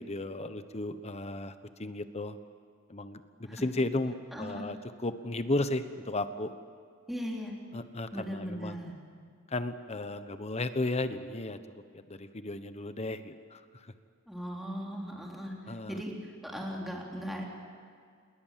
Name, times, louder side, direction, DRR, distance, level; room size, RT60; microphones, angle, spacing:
voice 1, 0.0-1.5 1.8-2.4 2.9-6.5 7.7-8.8 9.5-11.6 12.1-13.9 15.7-16.0, left 2 dB, 30° left, 11 dB, 1.2 m, -34 dB
voice 2, 4.3-4.7 7.1-7.5 8.1-9.0 14.3-17.5, equal, ahead, -2 dB, 3.5 m, -38 dB
28.0 x 21.5 x 7.6 m, 2.2 s
head